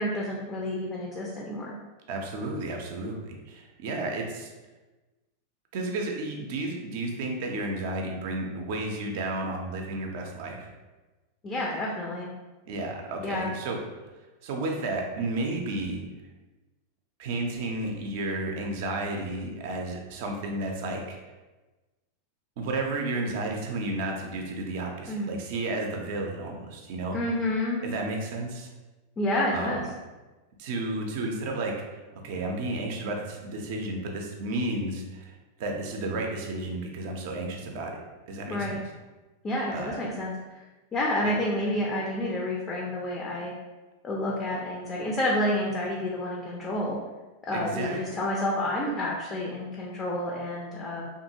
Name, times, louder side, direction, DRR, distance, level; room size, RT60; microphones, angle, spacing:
voice 1, 0.0-1.7 11.4-12.3 13.2-13.5 25.1-25.3 27.1-27.8 29.2-29.8 38.5-38.8 39.4-40.6 40.9-43.5 44.0-47.0 47.4-51.1, left 1 dB, 20° left, -2 dB, 0.4 m, -29 dB
voice 2, 2.1-4.5 5.7-10.7 12.7-13.8 14.4-16.0 17.2-21.2 22.6-27.2 27.8-28.7 29.5-29.8 30.6-31.7 32.1-37.9 38.3-38.8 39.7-40.0 47.5-48.0, right 2 dB, 50° right, 2 dB, 0.5 m, -32 dB
2.7 x 2.5 x 2.6 m, 1.2 s
figure-of-eight pair, 90°, 0 cm